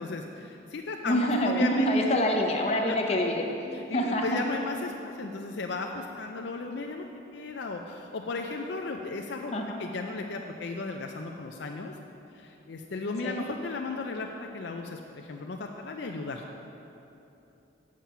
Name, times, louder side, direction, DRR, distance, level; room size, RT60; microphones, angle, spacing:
voice 1, 0.0-2.2 3.7-7.1 7.3-9.5 9.8-11.9 12.3-16.4, left 3 dB, 60° left, 3 dB, 0.4 m, -35 dB
voice 2, 1.0-4.4 9.5-9.8 13.2-13.5, equal, 30° left, 2 dB, 0.7 m, -26 dB
7.4 x 7.4 x 5.5 m, 2.9 s
head